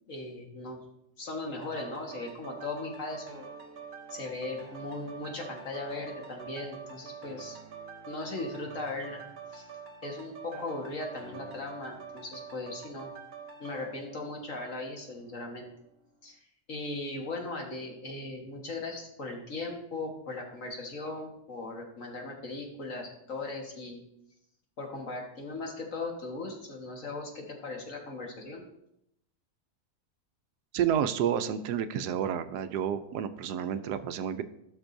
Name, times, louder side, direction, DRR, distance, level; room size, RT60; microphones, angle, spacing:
voice 1, 0.1-0.8 1.2-3.5 4.1-7.6 8.1-9.2 9.5-9.7 10.0-13.1 13.6-15.7 16.2-16.4 16.7-24.0 24.8-28.7, left 2 dB, 55° left, 1 dB, 1.8 m, -38 dB
sound 1, 1.6-15.3 15.8-15.9, right 6 dB, 45° right, 1.0 m, -46 dB
voice 2, 30.7-34.4, right 9 dB, 85° right, 11 dB, 1.2 m, -30 dB
16.0 x 6.2 x 2.6 m, 0.79 s
omnidirectional pair, 1.7 m